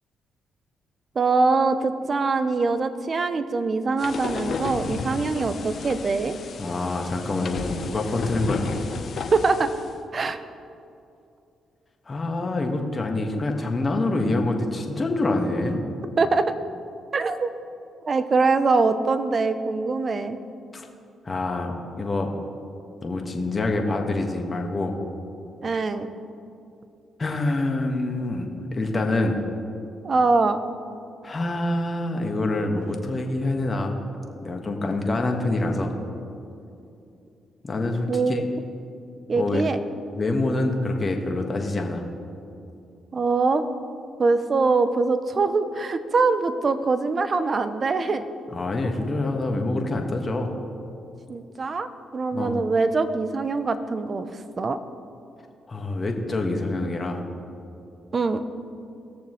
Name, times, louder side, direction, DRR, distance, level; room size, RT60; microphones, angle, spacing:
voice 1, 1.1-6.4 9.3-9.7 10.1-10.4 16.2-16.5 17.1-17.5 18.0-20.4 25.6-26.1 30.0-30.6 38.1-38.4 39.3-39.8 43.1-43.7 44.2-48.3 51.3-54.8 58.1-58.4, right 3 dB, 45° right, 11 dB, 0.8 m, -23 dB
sound 1, 4.0-9.9, left 4 dB, 60° left, 0.9 m, -33 dB
voice 2, 6.6-8.7 12.1-15.8 20.7-20.9 21.2-22.3 23.0-25.0 27.2-29.4 31.2-34.0 34.4-35.9 37.6-38.4 39.3-39.6 40.1-42.0 48.5-50.5 52.3-52.5 55.7-57.2, left 2 dB, 35° left, 2 dB, 1.6 m, -26 dB
19.5 x 6.8 x 3.2 m, 2.6 s
supercardioid pair, 55°, 0 cm